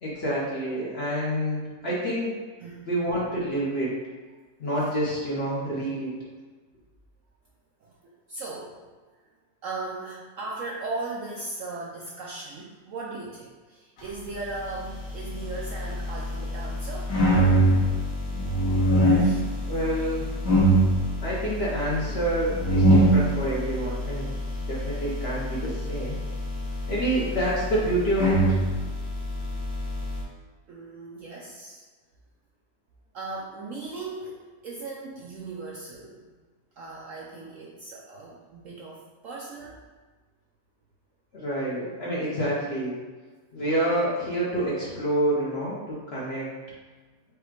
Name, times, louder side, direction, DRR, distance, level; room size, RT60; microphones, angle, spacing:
voice 1, 0.0-2.3 2.9-3.9 4.6-6.1 19.6-20.4 21.2-24.3 24.6-26.2 26.9-28.6 41.3-43.0 43.5-46.5, right 1 dB, 50° left, -6 dB, 0.8 m, -28 dB
voice 2, 7.8-8.7 9.6-17.1 19.2-19.4 27.2-27.4 30.7-31.8 33.1-36.3 36.8-39.8, right 3 dB, 70° right, -3 dB, 0.8 m, -38 dB
sound 1, 14.8-30.2, right 1 dB, 75° left, 1.7 m, -25 dB
4.9 x 2.3 x 4.5 m, 1.3 s
omnidirectional pair, 1.9 m